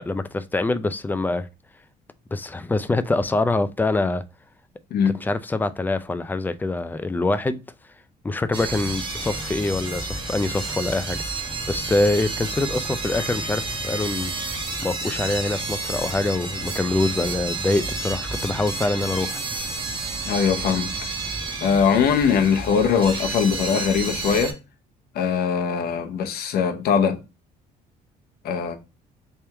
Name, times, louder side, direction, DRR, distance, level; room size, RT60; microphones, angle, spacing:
voice 1, 0.0-1.5 2.3-4.2 5.2-7.6 8.2-11.2 11.7-14.3 14.8-19.4, left 2 dB, 10° left, 0.4 m, -24 dB
sound 1, 8.5-24.5, right 3 dB, 30° right, 1.1 m, -30 dB
voice 2, 20.3-20.9 21.6-24.6 25.1-27.2 28.4-28.8, left 6 dB, 65° left, 0.8 m, -21 dB
3.4 x 2.9 x 3.3 m
cardioid pair, 110°, 17 cm